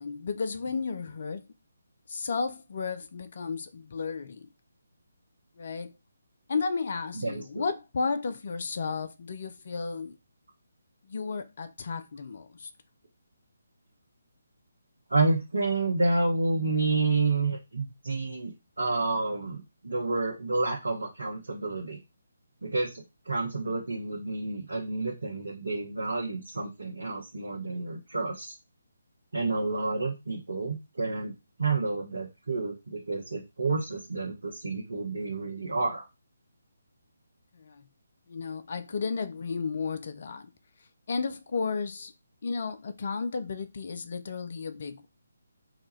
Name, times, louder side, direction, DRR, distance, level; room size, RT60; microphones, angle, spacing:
voice 1, 0.0-1.4 2.1-4.5 5.6-5.9 6.5-10.2 11.1-12.7 37.6-37.8 38.3-40.5 41.1-42.1 42.4-45.1, left 4 dB, 50° left, 0.4 m, -33 dB
voice 2, 7.1-7.6 15.1-22.0 22.6-28.5 29.3-31.3 31.6-36.0, right 3 dB, 70° right, 0.8 m, -29 dB
3.9 x 2.3 x 3.1 m
figure-of-eight pair, 145°, 0 cm